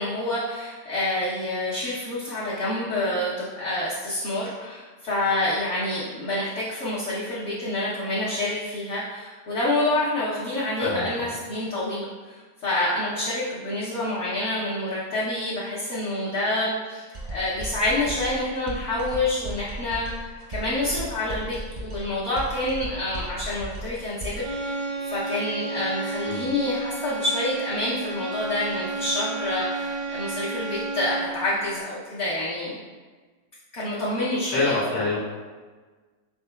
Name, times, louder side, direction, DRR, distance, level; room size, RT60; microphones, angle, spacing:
voice 1, 0.0-24.4 24.7-32.8 33.7-34.8, left 1 dB, 60° left, -7 dB, 0.9 m, -27 dB
voice 2, 10.8-11.3 26.2-26.4 34.4-35.2, left 3 dB, 90° left, -7 dB, 1.6 m, -26 dB
sound 1, 17.1-24.5, right 1 dB, 50° right, 0.5 m, -36 dB
sound 2, 24.4-31.5, right 3 dB, 85° right, 1.2 m, -32 dB
4.3 x 4.0 x 2.2 m, 1.4 s
omnidirectional pair, 1.8 m